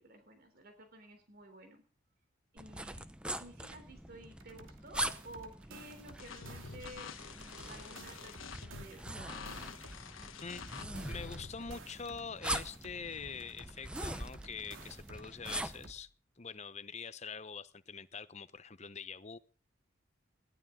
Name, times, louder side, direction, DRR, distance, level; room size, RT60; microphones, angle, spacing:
voice 1, 0.0-1.8 2.5-3.1 3.4-10.0, right 1 dB, 50° right, 6 dB, 3.4 m, -53 dB
sound 1, 2.6-15.9, right 1 dB, 5° right, 0.8 m, -43 dB
sound 2, 4.4-7.1 7.4-10.1 10.4-13.1 13.4-16.1, right 3 dB, 85° right, 2.9 m, -54 dB
sound 3, 6.2-11.5, left 5 dB, 85° left, 1.3 m, -47 dB
voice 2, 11.0-16.1 16.4-19.4, left 5 dB, 35° left, 14 dB, 0.8 m, -44 dB
20.5 x 14.5 x 3.7 m, 0.39 s
head